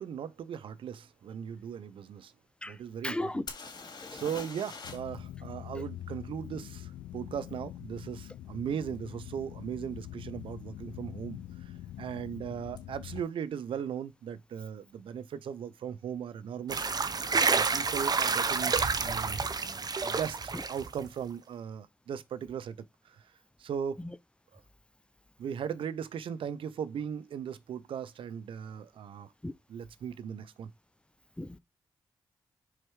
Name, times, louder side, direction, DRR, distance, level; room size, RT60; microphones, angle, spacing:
voice 1, 0.0-2.3 2.6-3.5 4.1-16.9 17.5-19.5 20.0-23.3 23.6-24.0 24.5-24.6 25.4-29.3 29.7-30.7, right 8 dB, 75° right, 0.5 m, -38 dB
voice 2, 3.0-3.4 29.4-29.5 31.4-31.6, left 1 dB, 10° left, 0.6 m, -34 dB
sound 1, 3.5-5.2 5.4-5.5 8.9-9.0 9.7-9.9 10.1-10.7 12.8-12.9 13.1-13.2, left 4 dB, 50° left, 2.5 m, -44 dB
sound 2, 4.8-13.2, left 12 dB, 90° left, 0.4 m, -44 dB
sound 3, 16.7-21.1, right 4 dB, 45° right, 0.9 m, -29 dB
4.8 x 4.2 x 4.6 m
supercardioid pair, 40°, 9 cm